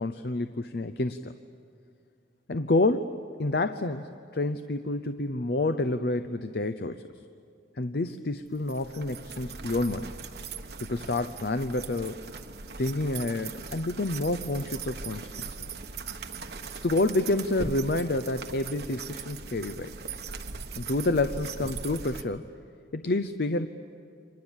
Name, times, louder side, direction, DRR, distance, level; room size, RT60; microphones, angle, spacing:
voice 1, 0.0-1.3 2.5-7.1 7.8-10.1 10.9-12.2 12.8-15.7 16.8-19.9 20.8-22.4 22.9-23.7, left 2 dB, 60° left, 9 dB, 0.7 m, -28 dB
sound 1, 8.5-22.2, right 4 dB, 60° right, 1.2 m, -40 dB
30.0 x 25.5 x 7.3 m, 2.3 s
head